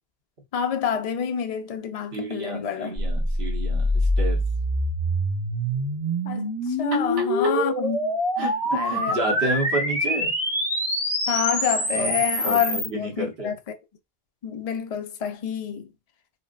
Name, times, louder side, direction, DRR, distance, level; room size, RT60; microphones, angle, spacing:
voice 1, 0.5-3.0 6.2-6.5 6.8-9.2 11.3-13.8 14.4-15.9, left 8 dB, 50° left, 0.5 m, -28 dB
voice 2, 2.1-4.4 7.2-7.3 8.4-10.3 11.9-12.1 12.4-13.5, right 2 dB, 75° right, 1.3 m, -30 dB
sound 1, 3.0-12.9, equal, 5° right, 1.0 m, -25 dB
4.3 x 2.1 x 2.4 m
omnidirectional pair, 1.0 m